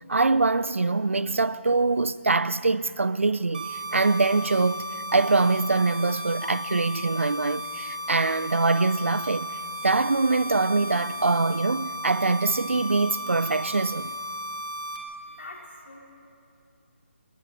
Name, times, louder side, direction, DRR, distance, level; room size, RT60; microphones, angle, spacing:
voice 1, 0.1-9.6 9.8-14.2, right 3 dB, 75° right, 0.6 m, -24 dB
sound 1, 3.5-15.0, equal, 40° right, 2.3 m, -35 dB
voice 2, 15.3-16.0, left 2 dB, 65° left, 5.0 m, -43 dB
29.0 x 20.0 x 4.5 m
figure-of-eight pair, 150°, 7 cm